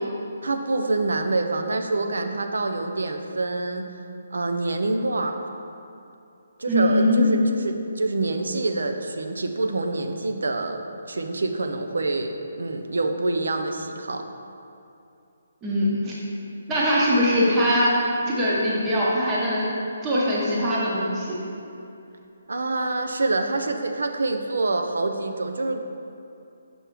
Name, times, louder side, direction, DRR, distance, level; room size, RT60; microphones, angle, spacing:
voice 1, 0.4-3.9 4.3-5.4 6.6-14.3 22.5-25.9, right 2 dB, 90° right, 5 dB, 0.5 m, -26 dB
voice 2, 6.7-7.3 15.6-16.1 16.7-17.9 18.3-19.7 20.0-21.4, equal, 15° right, -6 dB, 1.0 m, -21 dB
6.1 x 3.4 x 5.9 m, 2.7 s
hypercardioid pair, 165°, 0 cm